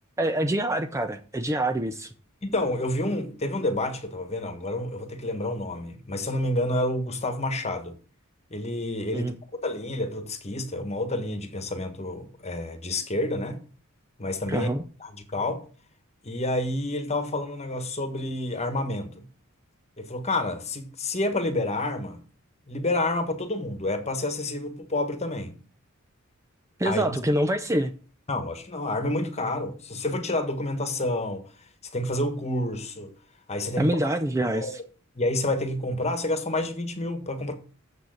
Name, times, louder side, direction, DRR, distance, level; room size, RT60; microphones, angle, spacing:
voice 1, 0.2-2.1 9.1-9.3 14.5-14.8 26.8-27.9 33.8-34.8, right 1 dB, 15° right, 0.5 m, -26 dB
voice 2, 2.4-8.0 8.5-9.3 9.6-13.6 14.2-14.7 15.0-15.6 16.2-19.3 20.0-22.2 22.7-25.6 26.8-27.2 28.3-31.4 31.9-33.1 33.5-34.0 34.5-34.8 35.1-37.5, left 1 dB, 30° left, 1.5 m, -29 dB
7.3 x 6.5 x 6.4 m
head